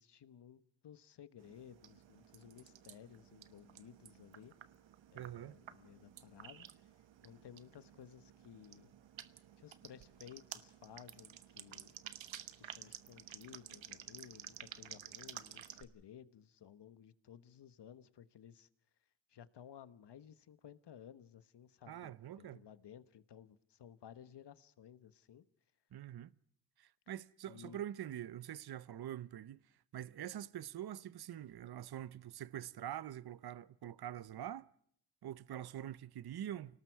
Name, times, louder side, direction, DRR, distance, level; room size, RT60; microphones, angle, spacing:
voice 1, 0.0-4.5 5.1-6.7 7.2-8.9 9.6-11.9 12.6-18.7 19.3-25.4 27.5-27.9, left 9 dB, 65° left, 1.3 m, -57 dB
sound 1, 1.4-15.8, right 10 dB, 85° right, 1.3 m, -53 dB
voice 2, 5.1-5.6 21.9-22.6 25.9-26.3 26.8-29.6 29.9-34.7 35.2-36.8, right 11 dB, 55° right, 0.8 m, -45 dB
29.0 x 19.0 x 4.7 m
cardioid pair, 105°, 44 cm